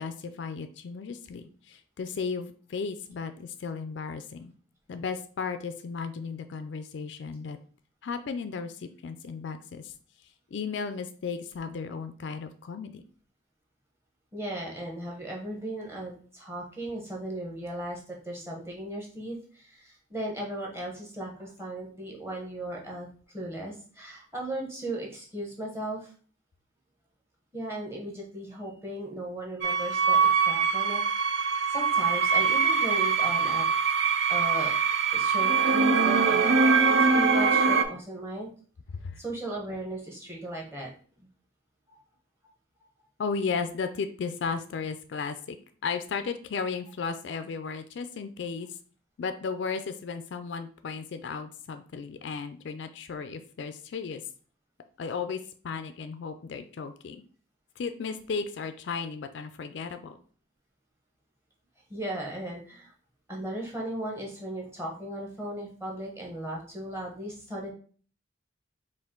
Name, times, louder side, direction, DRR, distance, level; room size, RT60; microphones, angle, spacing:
voice 1, 0.0-4.5 4.9-7.6 8.0-9.9 10.5-13.0 38.9-39.2 43.2-45.6 45.8-48.8 49.2-54.2 55.0-55.4 55.6-57.2 57.8-60.2, left 5 dB, 65° left, 10 dB, 0.4 m, -35 dB
voice 2, 14.3-23.1 23.3-26.1 27.5-31.0 31.3-33.7 34.3-34.7 35.1-38.5 39.2-40.9 41.2-41.3 41.9-42.0 61.9-62.9 63.3-67.7, right 1 dB, 15° right, -2 dB, 1.0 m, -37 dB
sound 1, 29.6-37.8, right 5 dB, 60° right, 0.5 m, -23 dB
4.4 x 2.5 x 3.7 m, 0.42 s
head